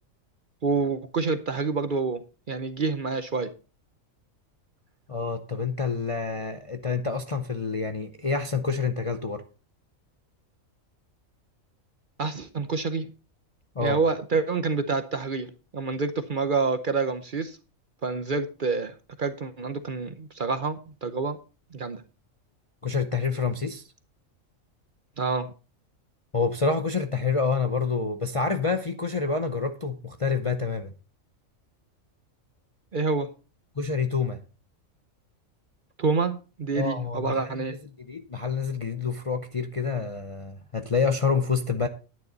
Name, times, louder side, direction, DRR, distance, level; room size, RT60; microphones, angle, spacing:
voice 1, 0.6-2.2 2.5-3.5 12.2-13.1 13.8-15.5 15.7-17.6 18.0-21.4 21.7-22.0 25.2-25.5 32.9-33.3 36.0-37.8, right 4 dB, 45° right, 0.8 m, -27 dB
voice 2, 5.1-9.4 13.8-14.0 22.8-23.8 26.3-30.9 33.8-34.4 36.8-37.6 38.1-41.9, left 5 dB, 35° left, 0.6 m, -27 dB
10.5 x 9.5 x 3.9 m
omnidirectional pair, 1.4 m